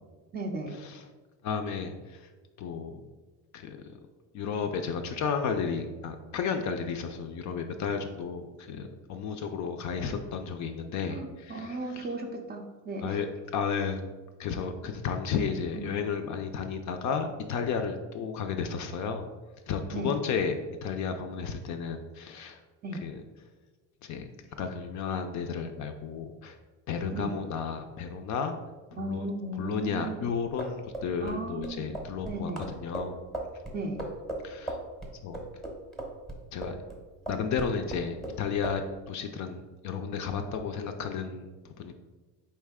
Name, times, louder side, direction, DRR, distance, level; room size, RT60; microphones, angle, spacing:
voice 1, 0.3-0.7 11.1-11.2 11.5-13.2 15.7-15.9 19.9-20.2 22.8-23.1 27.1-27.3 28.9-30.2 31.2-31.9 32.2-32.6 33.7-34.0, right 2 dB, 25° right, 2 dB, 0.4 m, -35 dB
voice 2, 1.4-2.3 2.6-3.0 3.5-3.8 4.3-12.1 13.0-13.3 13.5-14.0 14.4-19.3 19.7-22.6 23.0-23.2 24.0-24.3 24.6-26.6 26.9-28.5 28.9-29.3 29.6-33.2 34.4-34.8 35.2-35.4 36.5-36.8 37.3-41.9, left 6 dB, 45° left, 6 dB, 0.4 m, -33 dB
sound 1, 30.4-37.0 37.3-38.4 38.6-38.8, right 1 dB, ahead, 0.7 m, -37 dB
4.4 x 3.2 x 3.5 m, 1.3 s
supercardioid pair, 115°, 43 cm